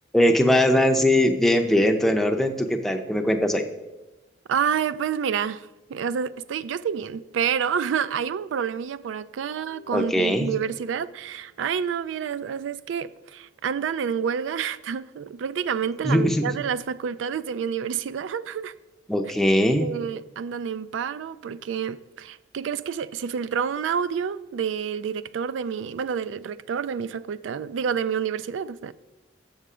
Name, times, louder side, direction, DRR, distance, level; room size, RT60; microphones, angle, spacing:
voice 1, 0.1-3.7 9.9-10.5 16.0-16.5 19.1-19.8, left 1 dB, ahead, 0.5 m, -20 dB
voice 2, 4.5-18.7 19.8-28.9, right 7 dB, 85° right, 0.3 m, -28 dB
7.6 x 5.6 x 4.8 m
head